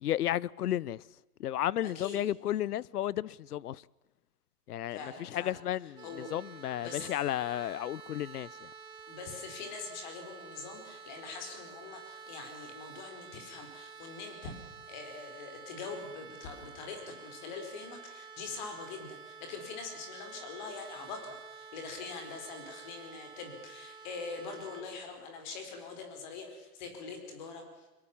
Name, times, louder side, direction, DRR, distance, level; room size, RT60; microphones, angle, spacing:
voice 1, 0.0-1.0 1.4-3.8 4.7-8.7, left 12 dB, 75° left, 0.8 m, -33 dB
voice 2, 4.9-5.6 6.0-6.3 6.8-7.1 9.1-27.9, left 4 dB, 30° left, 4.6 m, -43 dB
sound 1, 6.0-24.8, right 5 dB, 10° right, 1.5 m, -50 dB
23.5 x 22.0 x 7.2 m
hypercardioid pair, 175°, 46 cm